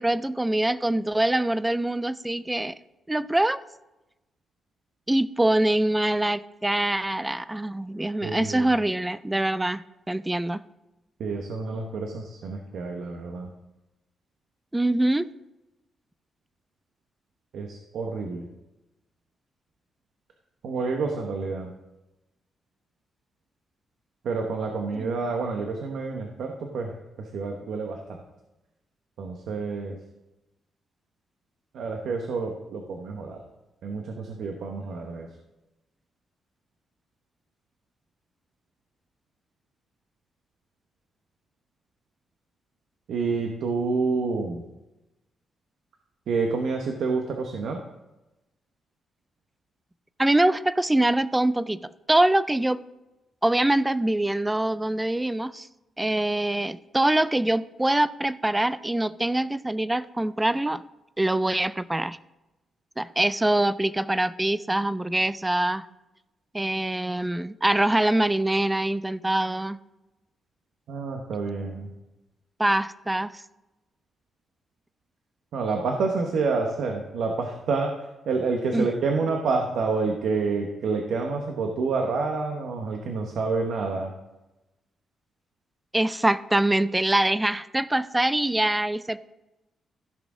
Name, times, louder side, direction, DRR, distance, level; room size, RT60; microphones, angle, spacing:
voice 1, 0.0-2.7 3.1-3.6 5.1-10.6 14.7-15.2 25.0-25.1 50.2-51.8 52.1-52.8 53.4-55.7 56.0-60.8 61.2-62.2 63.0-65.8 66.5-69.8 72.6-73.3 78.7-78.9 85.9-89.2, right 1 dB, 10° right, 16 dB, 0.3 m, -24 dB
voice 2, 8.2-8.7 11.2-13.5 17.5-18.5 20.6-21.7 24.2-26.9 27.2-28.2 29.2-30.0 31.7-33.4 33.8-35.3 43.1-44.6 46.3-47.8 70.9-71.9 75.5-77.9 78.3-84.1, right 4 dB, 75° right, 3 dB, 1.0 m, -28 dB
14.5 x 6.2 x 3.7 m, 1.0 s
cardioid pair, 135°, 0 cm